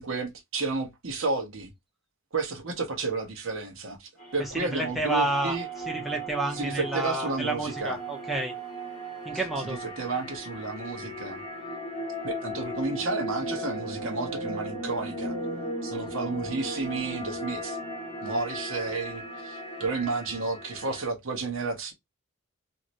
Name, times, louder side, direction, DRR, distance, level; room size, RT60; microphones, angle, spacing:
voice 1, 0.0-1.7 2.3-5.7 6.5-8.0 9.3-11.4 12.2-15.3 15.8-17.8 18.2-21.9, right 3 dB, 60° right, 1.0 m, -32 dB
sound 1, 4.2-21.1, right 1 dB, 30° left, 1.6 m, -36 dB
voice 2, 4.4-5.6 5.9-8.5 9.2-9.8, right 1 dB, ahead, 0.7 m, -30 dB
3.0 x 2.8 x 2.6 m
head